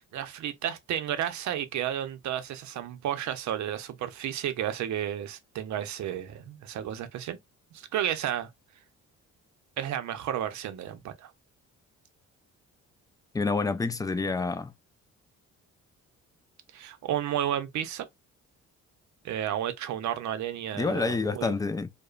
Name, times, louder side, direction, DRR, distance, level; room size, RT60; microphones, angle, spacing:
voice 1, 0.1-7.4 7.7-8.5 9.8-11.3 16.7-18.1 19.2-21.6, right 10 dB, 70° right, 0.6 m, -32 dB
voice 2, 13.3-14.7 20.7-21.9, left 4 dB, 15° left, 0.3 m, -28 dB
2.8 x 2.1 x 2.3 m
cardioid pair, 90°, 30 cm